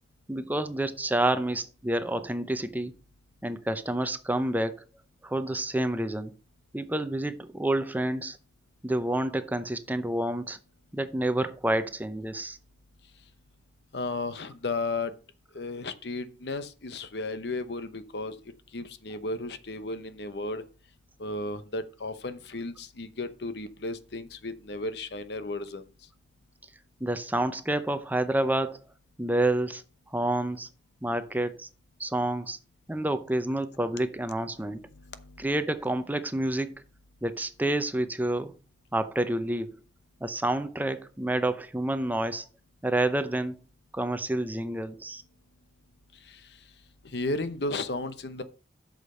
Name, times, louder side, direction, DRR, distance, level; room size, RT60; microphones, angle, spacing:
voice 1, 0.3-2.9 3.4-4.8 5.2-6.3 6.7-8.4 8.8-10.6 10.9-12.6 27.0-28.8 29.2-29.8 30.1-30.7 31.0-31.7 32.0-32.6 32.9-34.9 35.4-36.8 37.2-38.5 38.9-39.7 40.2-42.5 42.8-43.6 43.9-45.2, right 1 dB, 10° right, 0.6 m, -28 dB
voice 2, 13.9-15.1 15.5-18.3 18.7-20.6 21.2-25.8 34.9-35.5 46.3-46.4 47.1-48.4, left 2 dB, 65° left, 0.9 m, -34 dB
8.1 x 6.5 x 5.5 m
head